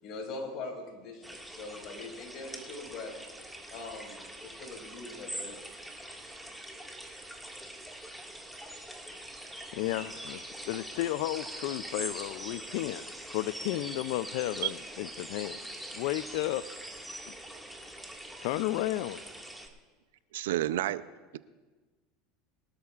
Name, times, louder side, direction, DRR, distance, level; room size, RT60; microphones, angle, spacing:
voice 1, 0.0-3.1 3.7-5.6, left 3 dB, 55° left, 1 dB, 4.7 m, -42 dB
sound 1, 1.2-19.7, right 1 dB, ahead, 1.9 m, -43 dB
voice 2, 8.7-9.1 9.7-13.0 13.3-15.7 15.9-16.6 17.2-17.3 18.4-19.2, left 16 dB, 70° left, 15 dB, 0.3 m, -33 dB
voice 3, 20.3-21.0, right 14 dB, 85° right, 15 dB, 0.5 m, -29 dB
23.5 x 13.0 x 2.4 m, 1.3 s
supercardioid pair, 100°, 0 cm